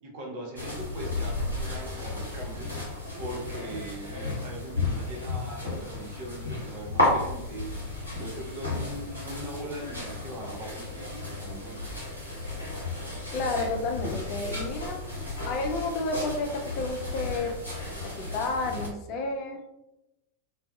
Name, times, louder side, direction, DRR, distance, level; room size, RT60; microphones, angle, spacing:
voice 1, 0.0-2.7 3.2-7.7 8.2-11.8, right 1 dB, 45° right, 0 dB, 0.7 m, -40 dB
sound 1, 0.6-18.9, left 2 dB, 85° right, 1.0 m, -33 dB
voice 2, 13.3-15.0 15.5-17.6 18.0-19.8, left 3 dB, 40° left, 4 dB, 0.4 m, -31 dB
2.3 x 2.2 x 2.5 m, 0.90 s
figure-of-eight pair, 90°, 0 cm